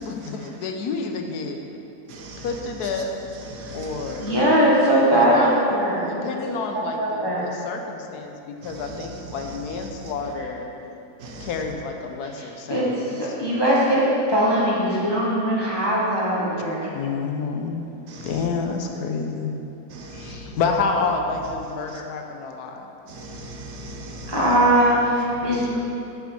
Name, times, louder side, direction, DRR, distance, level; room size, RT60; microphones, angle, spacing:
voice 1, 0.0-1.6 2.4-3.1 3.7-4.3 5.1-10.7 11.4-13.2 16.9-17.9 18.2-19.6 20.1-22.9, left 4 dB, 70° left, 4 dB, 1.3 m, -29 dB
voice 2, 2.1-2.4 3.5-4.0 11.2-11.5 18.2-18.3 19.9-20.4 23.1-24.3 24.7-24.8, right 2 dB, 80° right, 2 dB, 1.5 m, -38 dB
voice 3, 4.2-6.1 6.7-7.6 10.4-10.5 12.7-16.9 24.3-25.8, right 1 dB, 15° left, -6 dB, 1.1 m, -20 dB
7.9 x 6.9 x 5.4 m, 2.8 s
omnidirectional pair, 1.8 m